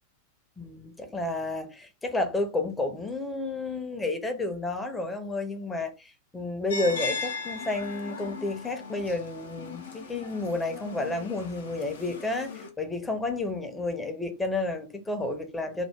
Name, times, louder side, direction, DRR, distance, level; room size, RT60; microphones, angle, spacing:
voice 1, 0.6-15.9, left 2 dB, 10° left, 0.6 m, -31 dB
sound 1, 6.7-12.7, left 4 dB, 65° left, 0.6 m, -38 dB
2.8 x 2.1 x 3.4 m
figure-of-eight pair, 90°, 0 cm